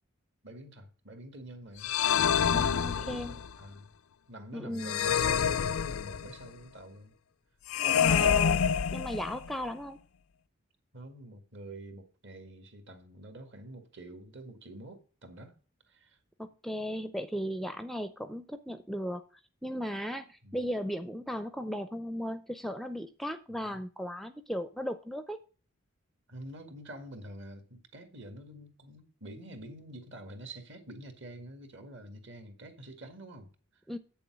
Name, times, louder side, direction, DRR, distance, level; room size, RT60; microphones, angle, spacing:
voice 1, 0.4-1.9 3.0-3.9 4.3-7.2 8.5-8.7 10.9-15.6 15.9-16.2 20.4-20.6 23.5-23.8 26.3-33.8, right 1 dB, 60° right, 1.9 m, -47 dB
sound 1, 1.8-3.5 4.8-6.5 7.7-9.5, left 8 dB, 80° left, 0.5 m, -27 dB
voice 2, 2.5-3.4 4.5-5.1 7.8-8.6 8.9-10.0 16.4-19.2 19.6-25.4 33.9-34.0, equal, ahead, 0.4 m, -36 dB
8.4 x 7.0 x 6.2 m
head